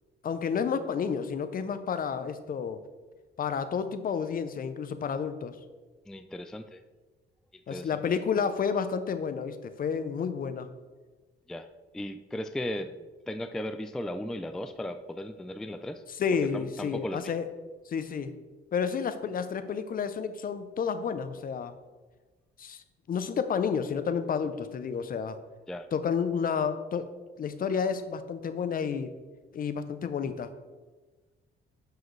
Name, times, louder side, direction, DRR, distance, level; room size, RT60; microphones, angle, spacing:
voice 1, 0.2-2.8 3.4-5.6 7.7-10.7 16.2-17.4 17.9-18.3 18.7-21.7 22.6-22.8 23.1-25.4 25.9-27.1 27.4-29.1 29.5-30.5, left 6 dB, 45° left, 11 dB, 0.6 m, -30 dB
voice 2, 6.1-6.8 7.7-8.0 11.5-13.0 13.3-16.0 16.5-17.3 25.7-25.9, left 1 dB, 5° left, 9 dB, 0.3 m, -36 dB
10.5 x 4.8 x 3.2 m, 1.3 s
cardioid pair, 90°, 20 cm